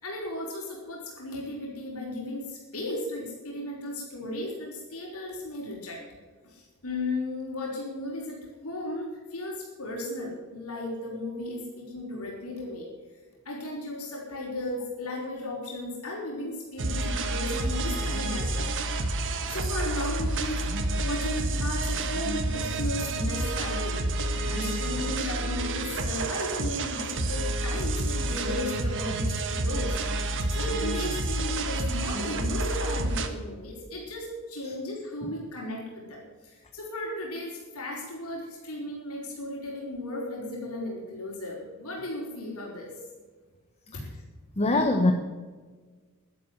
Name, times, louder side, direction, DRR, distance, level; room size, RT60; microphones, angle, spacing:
voice 1, 0.0-6.0 6.4-12.9 13.4-18.7 19.4-24.0 24.5-42.9 43.9-44.0, left 1 dB, 75° left, -2 dB, 4.7 m, -35 dB
sound 1, 16.8-33.3, right 2 dB, 60° right, 1.6 m, -29 dB
voice 2, 44.6-45.1, left 2 dB, 30° left, 4 dB, 1.1 m, -22 dB
12.0 x 11.0 x 8.1 m, 1.4 s
head